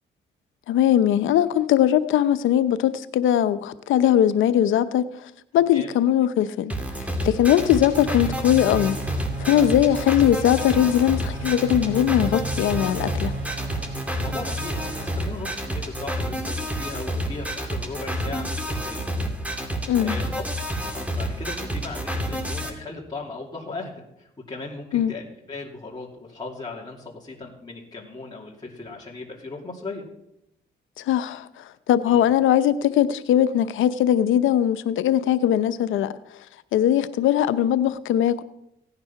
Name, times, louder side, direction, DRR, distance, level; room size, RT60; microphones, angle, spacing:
voice 1, 0.7-9.0 9.4-13.3 19.9-20.2 24.9-25.1 31.0-36.1 36.7-38.4, left 11 dB, 80° left, 0.8 m, -20 dB
sound 1, 6.7-22.7, equal, 5° right, 2.6 m, -29 dB
sound 2, 7.6-15.2, right 3 dB, 80° right, 5.3 m, -36 dB
voice 2, 14.2-19.0 20.0-20.4 20.9-30.0 32.1-32.2, left 3 dB, 20° left, 2.9 m, -37 dB
17.0 x 9.6 x 5.8 m
cardioid pair, 90°, 20 cm